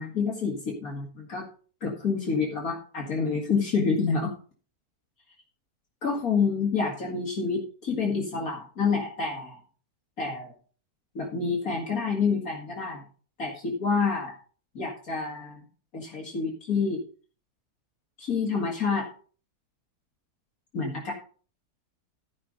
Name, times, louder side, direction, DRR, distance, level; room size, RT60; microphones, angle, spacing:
voice 1, 0.0-1.4 1.8-4.3 6.0-9.6 10.2-10.5 11.1-13.0 13.4-14.3 14.7-15.7 15.9-17.0 18.2-19.1 20.7-21.1, left 5 dB, 65° left, -1 dB, 2.5 m, -28 dB
13.5 x 5.5 x 5.2 m, 0.41 s
omnidirectional pair, 1.7 m